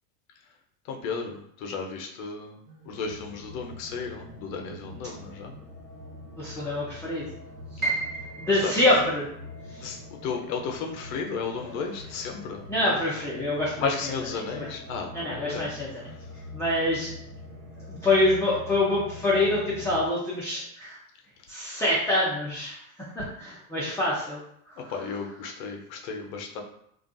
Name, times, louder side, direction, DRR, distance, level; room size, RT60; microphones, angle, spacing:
voice 1, 0.9-2.6 2.9-5.5 8.6-8.7 9.8-12.6 13.8-15.7 24.9-26.6, left 5 dB, 60° left, 3 dB, 0.7 m, -33 dB
sound 1, 2.7-20.1, left 2 dB, 85° right, 1.0 m, -44 dB
voice 2, 6.4-7.3 7.7-7.9 8.4-9.3 9.7-9.9 11.6-11.7 12.7-14.1 14.5-14.7 15.1-16.1 16.5-17.1 17.9-21.0 21.5-24.4 24.7-24.9, left 1 dB, 5° left, -8 dB, 0.5 m, -26 dB
Piano, 7.8-13.7 14.1-15.2 15.6-15.7 16.4-16.8, right 3 dB, 20° right, 0.8 m, -37 dB
2.5 x 2.3 x 2.5 m, 0.71 s
hypercardioid pair, 85°, 46 cm